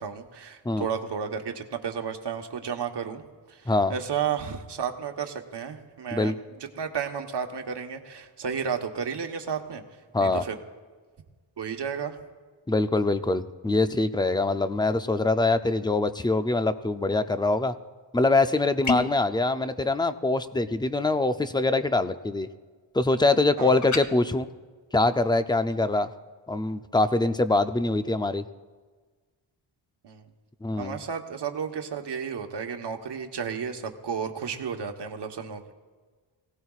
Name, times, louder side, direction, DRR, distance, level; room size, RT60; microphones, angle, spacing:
voice 1, 0.0-3.2 3.5-6.4 6.8-9.8 10.2-10.6 11.6-12.2 23.6-23.8 30.0-30.2 30.8-35.7, right 7 dB, 60° right, 5 dB, 1.2 m, -32 dB
voice 2, 12.7-17.7 18.1-22.5 22.9-24.5 24.9-26.1 26.5-28.4 30.6-31.0, left 2 dB, 10° left, 10 dB, 0.4 m, -24 dB
sound 1, 18.8-19.2 23.8-24.1, left 4 dB, 40° left, 0.9 m, -26 dB
23.0 x 17.0 x 2.4 m, 1.4 s
wide cardioid pair, 130°, 45 cm